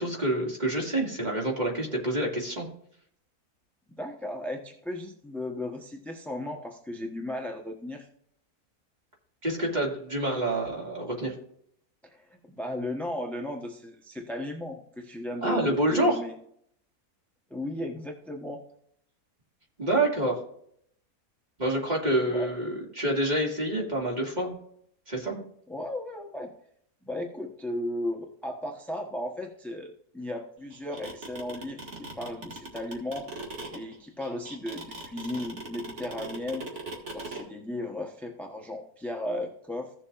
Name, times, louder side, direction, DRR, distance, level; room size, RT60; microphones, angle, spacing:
voice 1, 0.0-2.7 9.4-11.3 15.4-16.2 19.8-20.4 21.6-24.5 25.1-25.4, right 1 dB, 30° right, -2 dB, 2.4 m, -27 dB
voice 2, 4.0-8.1 12.0-16.3 17.5-18.6 22.3-22.5 25.7-26.5 27.0-33.3 33.7-36.6 37.1-39.9, left 1 dB, ahead, 2 dB, 0.8 m, -35 dB
sound 1, 30.7-37.4, right 2 dB, 50° right, 2.2 m, -39 dB
16.0 x 7.2 x 2.5 m, 0.67 s
omnidirectional pair, 1.6 m